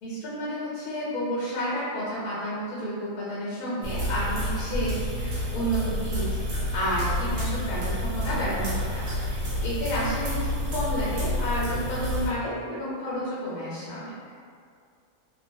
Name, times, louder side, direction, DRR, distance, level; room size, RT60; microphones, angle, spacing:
voice 1, 0.0-14.1, equal, 85° left, -8 dB, 1.2 m, -31 dB
sound 1, 3.8-12.3, equal, 60° right, 0.7 m, -29 dB
2.6 x 2.2 x 2.6 m, 2.2 s
omnidirectional pair, 1.6 m